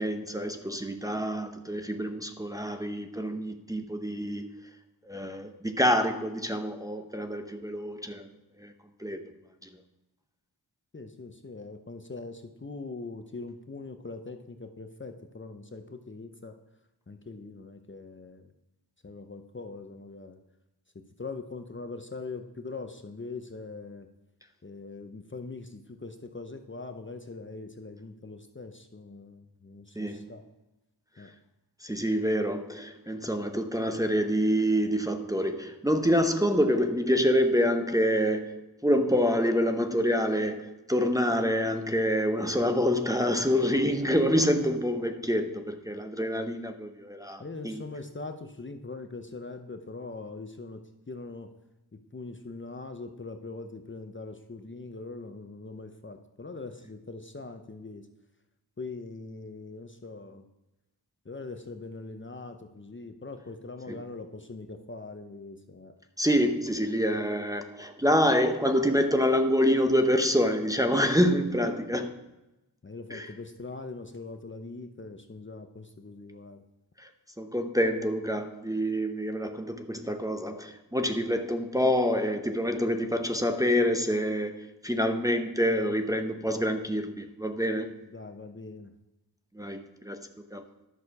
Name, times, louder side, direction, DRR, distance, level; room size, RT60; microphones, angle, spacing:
voice 1, 0.0-4.5 5.1-8.3 8.6-8.7 9.0-9.2 30.0-30.3 31.8-47.8 63.9-64.0 66.2-72.2 73.1-73.3 77.0-77.1 77.4-88.0 89.5-90.6, equal, 10° right, 5 dB, 0.8 m, -27 dB
voice 2, 10.9-16.6 17.1-18.5 19.0-20.4 21.2-24.1 24.6-30.4 31.2-31.3 47.4-51.5 51.9-58.1 58.8-60.4 61.3-65.9 72.8-76.6 88.1-88.9, left 3 dB, 30° left, 6 dB, 0.7 m, -42 dB
11.0 x 6.4 x 4.7 m, 0.96 s
wide cardioid pair, 65°, 42 cm